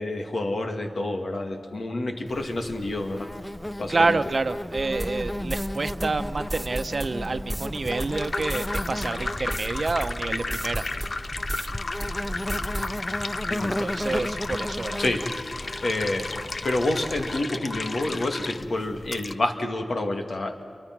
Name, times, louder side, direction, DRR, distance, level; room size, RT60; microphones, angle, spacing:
voice 1, 0.0-3.3 3.8-4.2 13.5-14.0 15.0-15.3 15.8-16.3 16.6-20.5, left 2 dB, 80° left, 4 dB, 2.4 m, -28 dB
Insect, 2.3-17.4, left 1 dB, 15° left, 0.6 m, -35 dB
voice 2, 3.9-11.2 13.6-15.0, right 3 dB, 60° right, 10 dB, 0.9 m, -28 dB
sound 1, 5.0-11.7 12.0-13.0, right 1 dB, 10° right, 1.7 m, -35 dB
sound 2, 7.8-19.3, left 3 dB, 60° left, 0.9 m, -34 dB
29.5 x 24.0 x 6.1 m, 2.4 s
wide cardioid pair, 80°, 0 cm